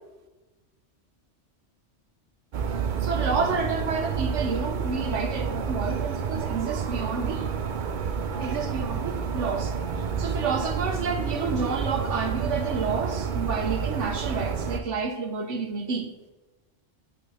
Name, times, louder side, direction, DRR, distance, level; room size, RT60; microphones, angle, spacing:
sound 1, 2.5-14.8, right 6 dB, 50° right, 0.6 m, -29 dB
voice 1, 2.7-7.4 8.4-9.7 10.2-16.1, right 4 dB, 90° right, 1.4 m, -30 dB
9.4 x 3.8 x 6.3 m
omnidirectional pair, 1.2 m